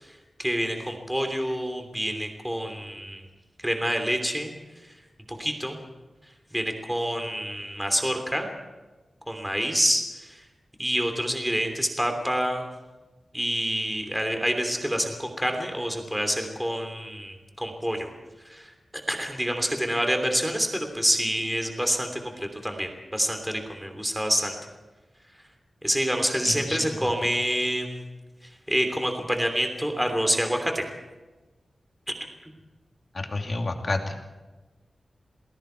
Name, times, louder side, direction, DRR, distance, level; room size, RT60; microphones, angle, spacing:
voice 1, 0.0-3.2 3.6-4.5 5.3-5.8 6.5-8.5 9.3-10.4 10.8-12.7 13.3-18.1 18.4-18.7 19.1-24.5 25.8-28.0 28.7-30.8, equal, 5° right, 4 dB, 3.0 m, -27 dB
voice 2, 26.5-27.0 33.1-34.1, left 2 dB, 40° left, 3 dB, 2.6 m, -30 dB
29.5 x 20.0 x 4.6 m, 1.2 s
wide cardioid pair, 140°, 0 cm